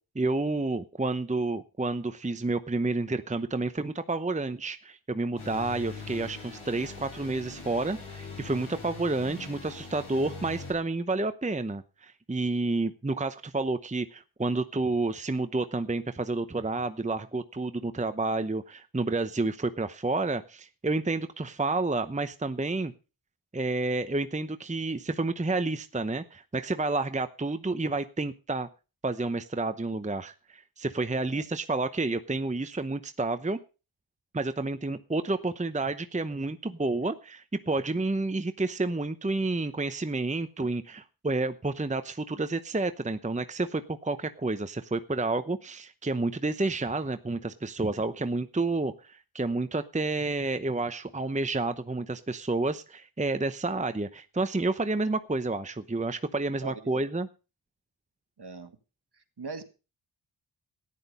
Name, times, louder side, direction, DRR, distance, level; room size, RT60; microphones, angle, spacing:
voice 1, 0.1-22.9 23.5-28.7 29.0-33.6 34.3-57.3, right 2 dB, 15° right, 10 dB, 0.8 m, -30 dB
sound 1, 5.4-10.7, left 4 dB, 85° left, 7.9 m, -42 dB
voice 2, 56.6-57.0 58.4-58.7 59.4-59.6, right 3 dB, 55° right, 8 dB, 2.0 m, -40 dB
14.0 x 10.5 x 5.5 m, 0.33 s
cardioid pair, 55°, 49 cm